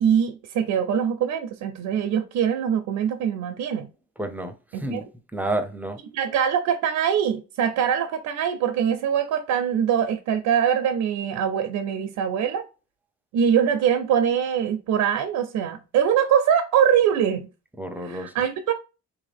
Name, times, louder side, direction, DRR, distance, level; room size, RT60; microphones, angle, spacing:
voice 1, 0.0-3.9 4.7-5.0 6.1-12.6 13.3-17.5 18.0-18.7, right 8 dB, 75° right, 0.5 m, -23 dB
voice 2, 4.2-5.0 5.3-6.0 17.8-18.3, right 1 dB, 5° right, 0.6 m, -30 dB
3.3 x 2.7 x 3.3 m
cardioid pair, 90°, 30 cm